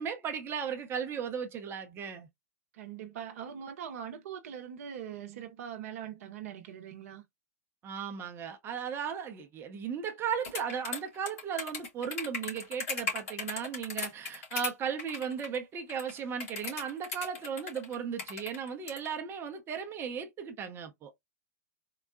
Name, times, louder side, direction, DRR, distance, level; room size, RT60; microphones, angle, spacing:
voice 1, 0.0-2.3 7.8-21.1, right 7 dB, 30° right, 0.7 m, -36 dB
voice 2, 2.7-7.2, right 9 dB, 60° right, 0.8 m, -42 dB
sound 1, 10.4-14.7 15.0-15.6 15.9-19.1, left 4 dB, 65° left, 2.1 m, -37 dB
3.8 x 2.1 x 2.4 m
figure-of-eight pair, 100°, 9 cm